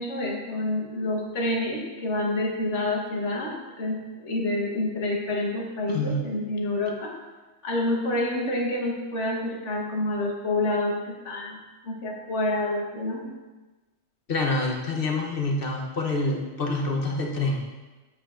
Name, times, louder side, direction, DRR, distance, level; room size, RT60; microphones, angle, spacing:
voice 1, 0.0-7.1 7.6-13.3, left 1 dB, 75° left, -2 dB, 1.6 m, -28 dB
voice 2, 5.9-6.2 14.3-17.6, left 2 dB, 50° left, 0 dB, 1.0 m, -26 dB
7.8 x 7.6 x 2.5 m, 1.2 s
omnidirectional pair, 1.3 m